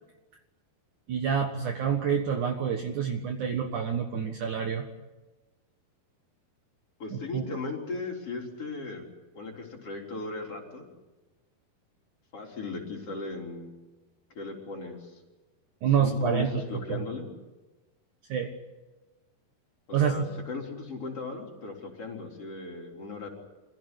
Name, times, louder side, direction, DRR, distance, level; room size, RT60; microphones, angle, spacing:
voice 1, 1.1-4.9 7.1-7.4 15.8-16.5 16.9-17.0 18.3-18.5 19.9-20.3, right 7 dB, 60° right, 4 dB, 2.6 m, -27 dB
voice 2, 7.0-9.1 9.3-10.9 12.3-13.7 14.3-15.1 16.0-17.3 19.9-23.3, left 3 dB, 40° left, 0 dB, 4.5 m, -37 dB
26.5 x 17.0 x 9.9 m, 1.2 s
omnidirectional pair, 4.5 m